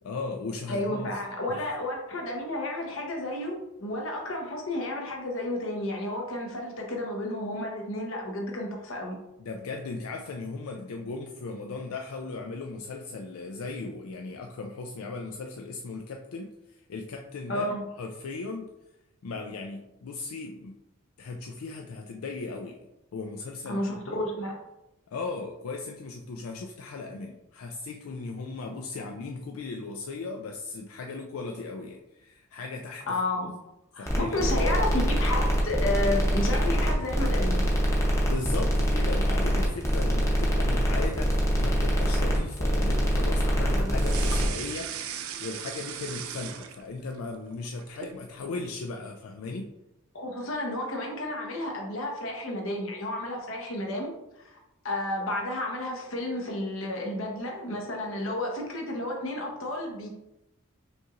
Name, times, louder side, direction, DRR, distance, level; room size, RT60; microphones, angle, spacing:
voice 1, 0.0-1.1 1.5-1.7 9.4-17.7 18.0-18.7 19.2-20.8 21.2-22.9 23.1-24.2 25.1-33.5 34.0-34.5 38.3-45.1 45.4-49.7, left 3 dB, 85° left, 2 dB, 0.4 m, -37 dB
voice 2, 0.7-9.2 17.5-17.8 23.7-24.6 33.1-33.5 33.9-37.6 43.7-44.0 50.1-54.1 54.4-54.6 54.8-60.1, left 1 dB, 70° left, 1 dB, 0.9 m, -31 dB
sound 1, 34.1-44.5, equal, 15° left, 0.7 m, -24 dB
sound 2, 43.9-47.2 47.5-48.2, right 9 dB, 85° right, 0.4 m, -37 dB
5.2 x 3.0 x 2.4 m, 0.92 s
head